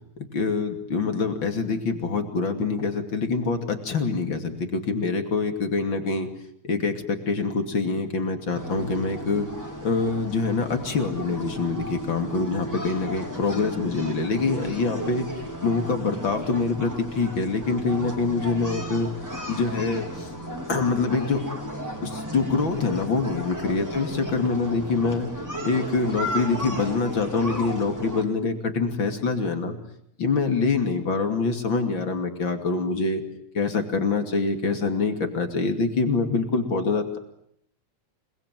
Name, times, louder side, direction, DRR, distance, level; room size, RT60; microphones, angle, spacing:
voice 1, 0.3-6.3 6.6-9.5 9.8-15.3 15.6-19.1 19.5-20.3 20.7-21.4 22.0-25.3 25.6-29.8 30.2-33.2 33.5-37.2, left 4 dB, 40° left, 6 dB, 3.2 m, -25 dB
sound 1, 8.5-28.2, equal, 5° right, 4.0 m, -34 dB
29.0 x 21.0 x 9.3 m, 0.71 s
omnidirectional pair, 3.3 m